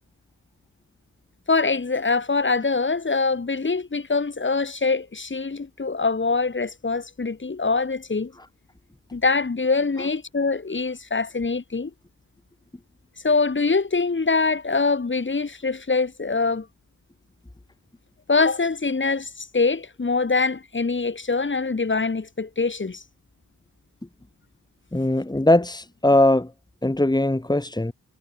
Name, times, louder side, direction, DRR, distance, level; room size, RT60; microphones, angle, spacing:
voice 1, 1.5-8.3 9.1-11.9 13.2-16.7 18.3-23.0, left 4 dB, 35° left, 6.0 m, -24 dB
voice 2, 24.9-26.5 26.8-27.9, left 1 dB, 10° left, 3.4 m, -20 dB
wide cardioid pair, 145°, 35 cm